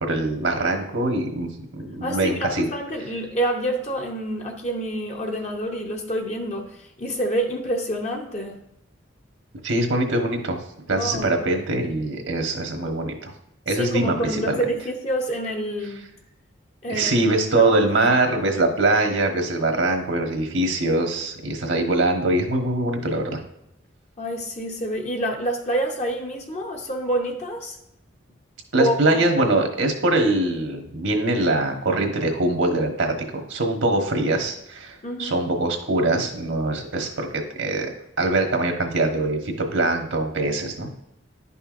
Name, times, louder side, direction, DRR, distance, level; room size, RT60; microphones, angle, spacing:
voice 1, 0.0-2.6 9.6-10.6 10.9-13.3 13.7-14.6 16.9-23.4 28.7-37.3 37.6-37.9 38.2-41.0, right 2 dB, 75° right, 3 dB, 1.3 m, -23 dB
voice 2, 2.0-8.6 10.9-11.4 13.7-16.0 16.8-17.1 17.6-17.7 18.9-19.0 24.2-27.8 28.8-29.2 35.0-35.4, right 1 dB, 35° left, 2 dB, 0.8 m, -27 dB
11.0 x 5.6 x 2.5 m, 0.80 s
head